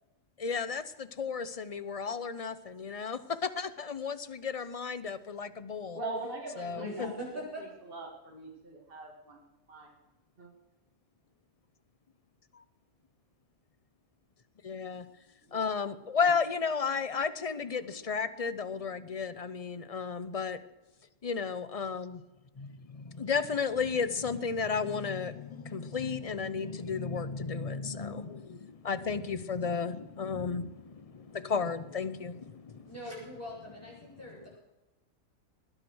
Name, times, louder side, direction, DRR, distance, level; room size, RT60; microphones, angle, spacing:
voice 1, 0.4-6.0 6.6-7.1 14.6-15.1 15.5-20.6 21.2-22.2 22.6-32.9, left 5 dB, 35° left, 14 dB, 0.7 m, -33 dB
voice 2, 5.9-7.1 7.6-9.9 10.4-10.5, right 2 dB, 40° right, -2 dB, 2.8 m, -41 dB
voice 3, 6.8-7.6 15.4-15.7 32.8-34.6, equal, 10° left, -5 dB, 7.7 m, -42 dB
20.5 x 10.0 x 6.3 m, 1.0 s
omnidirectional pair, 1.5 m